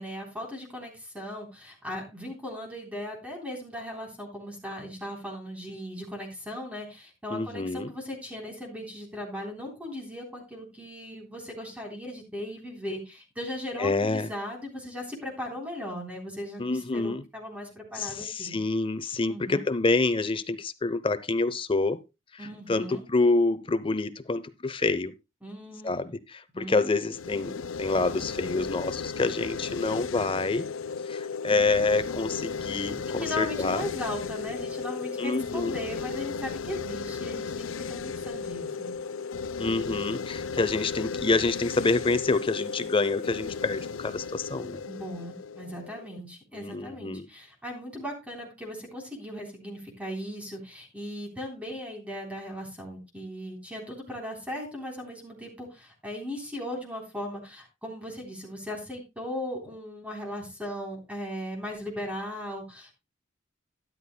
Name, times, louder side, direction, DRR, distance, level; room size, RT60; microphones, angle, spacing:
voice 1, 0.0-18.6 19.3-19.7 22.4-23.0 25.4-26.1 26.5-26.9 33.1-38.9 44.9-62.9, left 1 dB, 5° right, 3.6 m, -38 dB
voice 2, 7.3-7.9 13.8-14.3 16.6-17.2 17.9-22.0 22.3-25.1 25.8-30.7 31.1-33.8 35.2-35.8 39.6-44.8 46.5-47.3, left 3 dB, 25° left, 0.6 m, -27 dB
sound 1, 27.1-46.2, left 5 dB, 90° left, 0.5 m, -35 dB
13.0 x 11.5 x 2.2 m
head